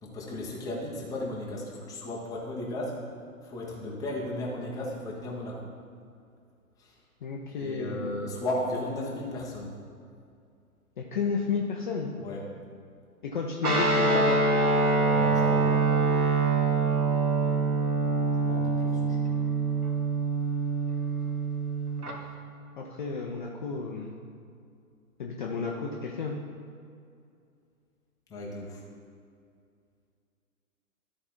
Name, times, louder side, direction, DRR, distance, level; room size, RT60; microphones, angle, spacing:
voice 1, 0.0-3.0 3.4-5.7 6.8-6.9 7.5-9.7 12.2-12.5 15.1-15.9 18.4-19.2 28.3-28.8, left 1 dB, 10° left, -3 dB, 0.9 m, -35 dB
voice 2, 7.2-8.1 11.0-12.1 13.2-14.4 22.8-24.1 25.2-26.4, left 5 dB, 35° left, -1 dB, 0.6 m, -32 dB
Guitar, 13.6-22.1, right 3 dB, 80° right, 1.5 m, -25 dB
12.5 x 4.3 x 4.4 m, 2.4 s
figure-of-eight pair, 125°, 45 cm